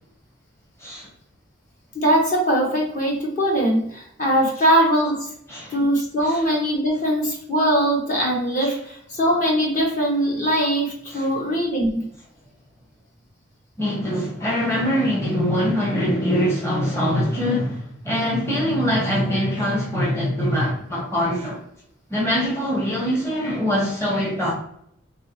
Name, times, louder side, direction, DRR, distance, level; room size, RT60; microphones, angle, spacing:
voice 1, 1.9-5.3 5.7-11.9, equal, 40° left, 1.0 m, -21 dB
voice 2, 5.5-5.8 6.2-6.4 8.6-8.7 11.1-11.3 13.8-21.6 22.1-24.5, equal, 15° left, 0.8 m, -23 dB
3.6 x 2.9 x 2.9 m
head